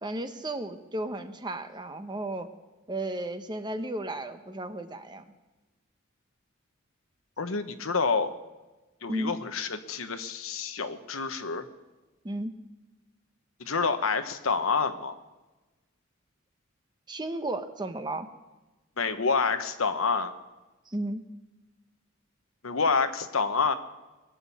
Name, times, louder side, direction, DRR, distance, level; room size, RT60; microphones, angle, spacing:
voice 1, 0.0-2.5 2.9-5.2 9.1-9.3 12.2-12.5 17.1-18.3 20.9-21.2, right 1 dB, 20° right, 8 dB, 0.9 m, -34 dB
voice 2, 7.4-8.3 9.0-11.6 13.6-15.2 19.0-20.3 22.6-23.7, left 4 dB, 85° left, 9 dB, 1.1 m, -28 dB
21.0 x 7.5 x 8.5 m, 1.1 s
head